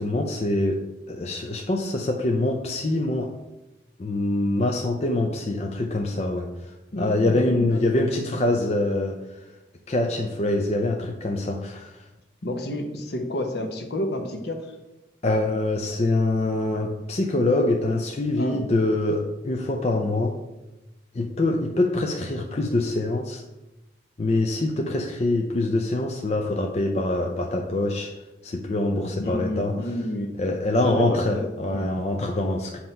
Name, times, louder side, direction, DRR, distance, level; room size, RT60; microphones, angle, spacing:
voice 1, 0.0-3.4 4.0-9.5 9.9-12.1 15.2-20.4 21.1-23.4 24.2-29.8 30.4-32.8, left 2 dB, 35° left, 2 dB, 0.4 m, -25 dB
voice 2, 6.9-8.0 12.4-14.8 18.4-18.6 29.2-30.3 30.7-31.9, left 1 dB, 65° left, 4 dB, 0.9 m, -30 dB
7.5 x 2.9 x 5.4 m, 1.0 s
head